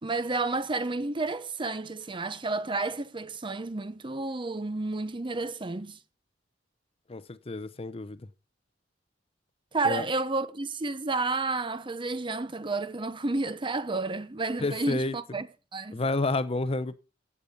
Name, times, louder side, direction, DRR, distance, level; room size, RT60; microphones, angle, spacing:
voice 1, 0.0-6.0 9.7-15.5 15.7-16.0, right 3 dB, 25° right, 0.9 m, -31 dB
voice 2, 7.1-8.2 9.8-10.0 14.6-15.1 15.9-17.0, left 2 dB, 30° left, 0.7 m, -30 dB
15.5 x 8.5 x 5.2 m
head